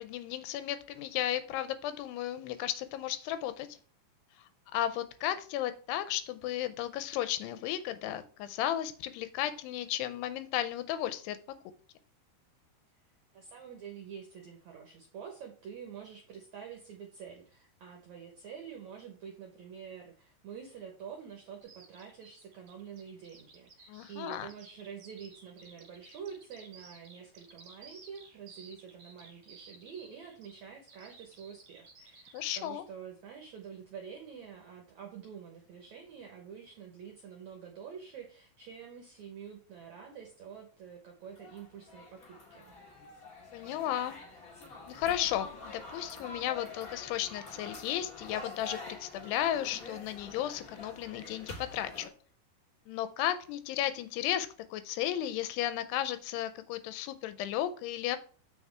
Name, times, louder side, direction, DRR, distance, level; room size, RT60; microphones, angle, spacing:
voice 1, 0.0-3.8 4.7-11.4 23.9-24.5 32.3-32.9 43.5-44.2 44.9-52.1 52.9-58.2, left 12 dB, 85° left, 11 dB, 2.7 m, -34 dB
voice 2, 13.3-42.7, right 7 dB, 75° right, 2 dB, 1.7 m, -47 dB
Bird vocalization bird call bird song, 21.6-32.7, right 4 dB, 55° right, 1.7 m, -56 dB
sound 1, 41.3-52.1, left 3 dB, 60° left, 0.9 m, -47 dB
7.3 x 6.0 x 3.4 m, 0.41 s
omnidirectional pair, 4.8 m